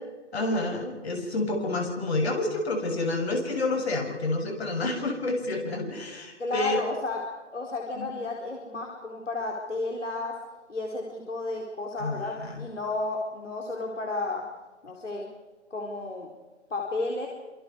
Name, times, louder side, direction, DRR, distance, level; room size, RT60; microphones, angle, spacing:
voice 1, 0.3-6.8 7.9-8.0 12.0-12.7, left 2 dB, 60° left, 2 dB, 7.6 m, -29 dB
voice 2, 6.4-7.2 7.5-10.4 10.7-14.4 14.8-15.3 15.7-16.3 16.7-17.3, left 3 dB, 75° left, -1 dB, 4.6 m, -32 dB
28.5 x 27.0 x 4.9 m, 1.2 s
figure-of-eight pair, 145°, 36 cm